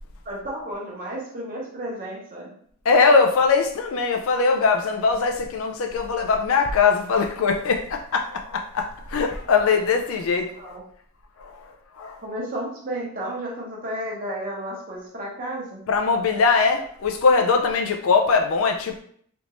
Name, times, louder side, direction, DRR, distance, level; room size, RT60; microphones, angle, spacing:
voice 1, 0.2-2.5 10.6-10.8 12.2-15.8, right 1 dB, 40° right, -3 dB, 0.9 m, -32 dB
voice 2, 2.9-10.7 11.4-11.6 12.0-12.2 15.9-19.0, left 4 dB, 65° left, 4 dB, 0.4 m, -21 dB
3.5 x 2.5 x 3.0 m, 0.62 s
head